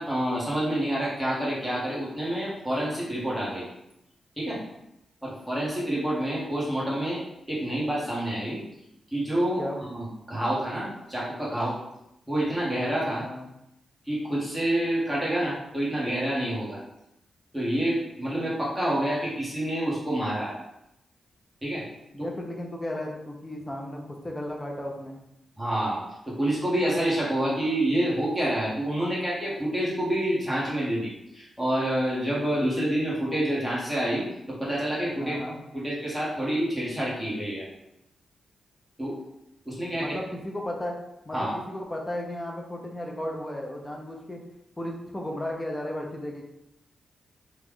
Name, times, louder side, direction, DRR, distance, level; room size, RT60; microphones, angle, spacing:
voice 1, 0.0-3.7 4.4-4.6 5.2-7.2 7.5-8.6 9.1-9.6 9.9-11.8 12.3-13.3 14.1-16.8 17.5-20.6 21.6-21.8 22.2-22.3 25.6-35.4 35.7-37.7 39.0-39.2 39.6-40.2 41.3-41.5, right 1 dB, 5° right, -7 dB, 1.5 m, -28 dB
voice 2, 22.1-25.2 35.2-35.6 39.9-40.9 41.2-44.4 44.8-46.4, left 1 dB, 15° left, 0 dB, 0.7 m, -34 dB
3.1 x 2.4 x 3.6 m, 0.84 s
cardioid pair, 80°, 0 cm